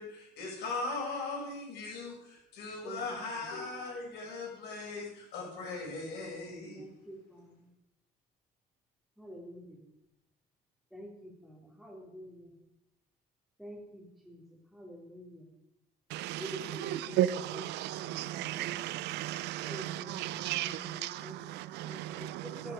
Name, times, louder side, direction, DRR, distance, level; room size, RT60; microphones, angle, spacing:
voice 1, 0.0-6.8, left 3 dB, 75° left, 6.8 m, -39 dB
voice 2, 6.7-7.7 9.2-9.8 10.9-12.5 13.6-15.5 16.4-18.9 19.6-21.5 21.9-22.7, right 1 dB, ahead, 3.4 m, -47 dB
voice 3, 16.1-16.4 16.8-22.4, right 13 dB, 85° right, 0.6 m, -34 dB
12.5 x 12.5 x 5.1 m
cardioid pair, 110°, 17 cm